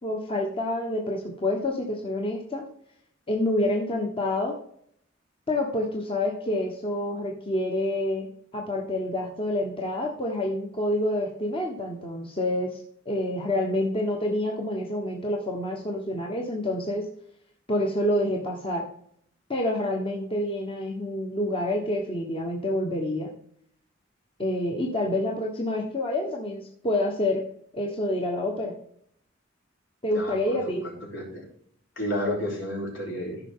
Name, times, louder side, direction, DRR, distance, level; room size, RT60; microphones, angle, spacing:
voice 1, 0.0-2.6 3.3-4.6 5.5-12.8 13.0-17.1 17.7-18.8 19.5-23.3 24.4-27.5 27.7-28.8 30.0-30.9, left 1 dB, 30° left, 0 dB, 1.3 m, -28 dB
voice 2, 30.1-30.7 31.1-31.4 32.0-33.4, left 1 dB, 70° left, -2 dB, 4.1 m, -31 dB
14.5 x 5.7 x 3.7 m, 0.66 s
head